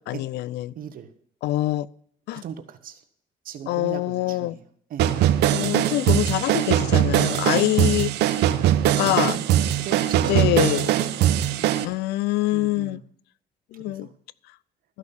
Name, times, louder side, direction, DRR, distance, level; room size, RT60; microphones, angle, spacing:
voice 1, 0.1-0.7 1.4-1.9 2.3-2.4 3.7-4.5 5.5-8.1 9.0-9.4 10.3-10.9 11.8-13.0 13.7-14.1, left 16 dB, 80° left, 0.5 m, -24 dB
voice 2, 0.7-1.1 2.3-3.0 3.4-4.6 4.9-5.2 8.7-10.4 10.8-10.9 11.6-11.9 12.5-13.0 13.9-14.1, right 9 dB, 55° right, 1.2 m, -38 dB
sound 1, 5.0-11.8, right 12 dB, 80° right, 1.0 m, -21 dB
13.5 x 6.3 x 7.0 m
cardioid pair, 110°, 17 cm